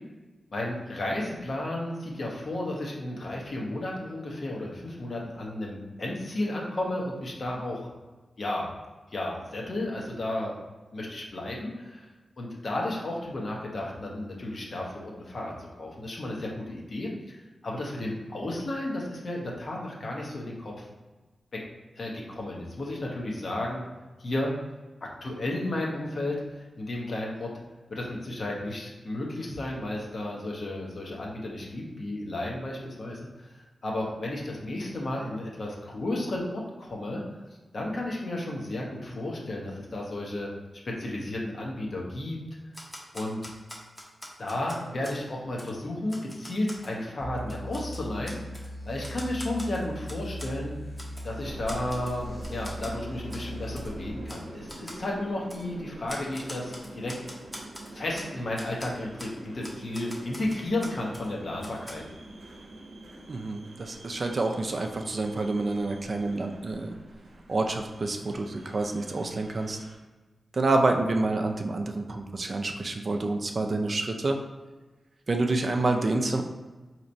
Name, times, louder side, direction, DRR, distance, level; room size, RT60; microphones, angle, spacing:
voice 1, 0.5-7.9 8.4-8.7 9.1-10.5 10.9-12.1 12.4-17.4 17.6-20.9 21.5-21.6 22.0-23.8 24.2-24.5 25.0-27.5 27.9-37.2 37.7-40.5 40.8-42.4 43.1-43.4 44.4-50.7 51.2-57.1 57.9-62.0, left 1 dB, 55° left, -2 dB, 0.8 m, -33 dB
Typewriter, 42.7-45.2 45.6-45.7 46.1-46.9 47.4-48.7 49.0-50.5 51.0-51.3 51.7-52.2 52.4-52.9 53.3-53.5 53.8-53.9 54.3-54.4 54.7-55.0 55.5-55.6 56.1-58.3 58.6-58.9 59.2-59.3 59.6-61.3 61.6-61.9, equal, 10° left, 0.7 m, -43 dB
sound 1, 47.2-54.1, equal, 75° left, 1.1 m, -39 dB
sound 2, 51.4-70.0, right 1 dB, 85° right, 0.7 m, -45 dB
voice 2, 63.3-66.9 67.5-69.8 70.5-74.4 75.3-76.4, right 2 dB, 45° right, 3 dB, 0.4 m, -28 dB
4.2 x 2.9 x 2.6 m, 1.3 s
wide cardioid pair, 95°, 0 cm